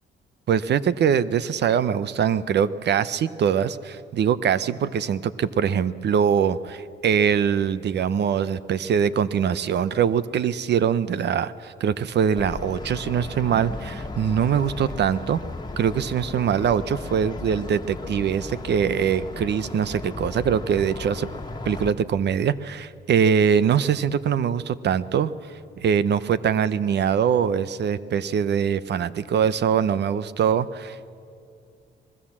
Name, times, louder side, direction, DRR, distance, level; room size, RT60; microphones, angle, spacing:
voice 1, 0.5-15.4 15.8-21.3 21.6-25.3 25.8-31.1, right 7 dB, 60° right, 16 dB, 0.8 m, -23 dB
sound 1, 12.3-21.9, left 2 dB, 20° left, 1.8 m, -35 dB
24.5 x 19.5 x 7.4 m, 2.5 s
cardioid pair, 90°, 20 cm